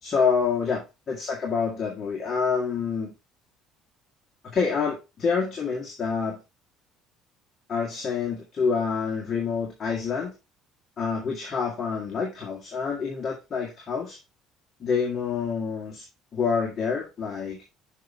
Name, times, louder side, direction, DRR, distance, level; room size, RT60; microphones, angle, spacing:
voice 1, 0.0-3.1 4.4-6.4 7.7-10.3 11.0-14.2 14.8-16.0 16.3-17.6, left 5 dB, 35° left, -2 dB, 2.0 m, -27 dB
6.5 x 5.7 x 3.6 m, 0.26 s
cardioid pair, 140°, 0 cm